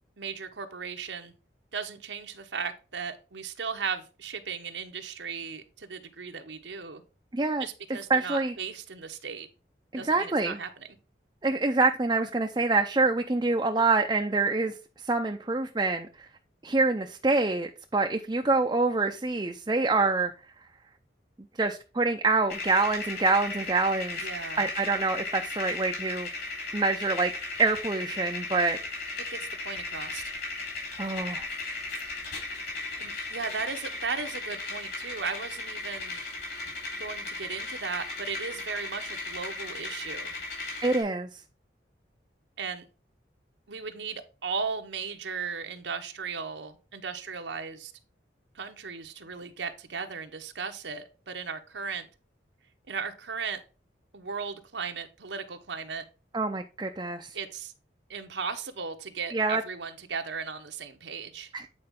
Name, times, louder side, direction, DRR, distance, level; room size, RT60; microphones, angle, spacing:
voice 1, 0.2-1.3 1.7-7.0 7.6-9.5 9.9-10.9 24.1-24.7 29.2-30.3 33.0-36.2 37.0-40.3 42.6-42.9 43.7-47.9 48.5-52.1 52.9-53.6 54.1-56.0 57.3-57.7 58.1-61.5, right 5 dB, 80° right, 1.0 m, -36 dB
voice 2, 7.3-7.6 8.1-8.5 9.9-10.6 11.4-14.7 15.0-16.3 16.6-20.3 21.6-24.2 24.6-26.3 26.7-27.3 27.6-28.8 31.0-31.4 40.8-41.4 56.3-57.4 59.3-59.6 61.5-61.7, right 3 dB, 25° right, 0.5 m, -26 dB
sound 1, 22.5-41.0, left 3 dB, 55° left, 3.9 m, -36 dB
8.7 x 4.6 x 3.7 m
head